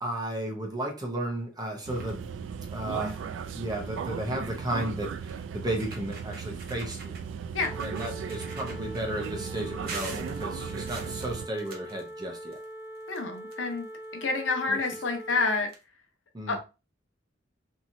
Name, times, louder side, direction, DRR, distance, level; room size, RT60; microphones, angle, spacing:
voice 1, 0.0-2.2 2.7-3.2 3.5-7.2 7.8-12.6 14.7-14.8 16.3-16.6, right 1 dB, 20° right, 0.7 m, -34 dB
sound 1, 1.9-2.2 2.7-2.8 3.1-3.4 4.5-4.6 5.3-5.4 5.7-7.2 7.6-9.3 9.9-12.6 12.9-14.1 15.0-15.1 15.3-15.4 15.7-15.8, right 4 dB, 55° right, 0.8 m, -44 dB
sound 2, 1.9-11.5, right 6 dB, 75° right, 0.3 m, -37 dB
sound 3, 7.6-15.6, right 1 dB, 50° left, 0.9 m, -42 dB
voice 2, 13.1-13.8 14.2-15.7 16.5-16.6, left 4 dB, 85° left, 0.8 m, -28 dB
2.9 x 2.7 x 2.6 m
head